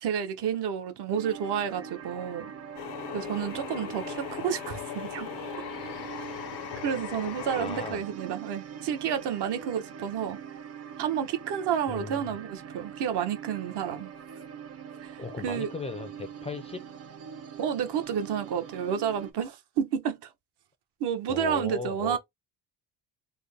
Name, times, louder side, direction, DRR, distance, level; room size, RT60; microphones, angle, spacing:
voice 1, 0.0-2.5 3.1-5.3 6.8-10.4 11.0-14.1 15.0-15.1 15.4-15.7 17.6-20.3 21.0-22.2, right 8 dB, 65° right, 1.0 m, -30 dB
sound 1, 1.1-19.3, right 8 dB, 35° right, 0.6 m, -43 dB
sound 2, 2.8-7.9, left 14 dB, 70° left, 0.5 m, -39 dB
voice 2, 7.6-8.0 11.9-12.4 15.2-16.9 21.3-22.2, left 3 dB, 15° left, 0.3 m, -37 dB
3.8 x 2.1 x 3.4 m
cardioid pair, 125°, 44 cm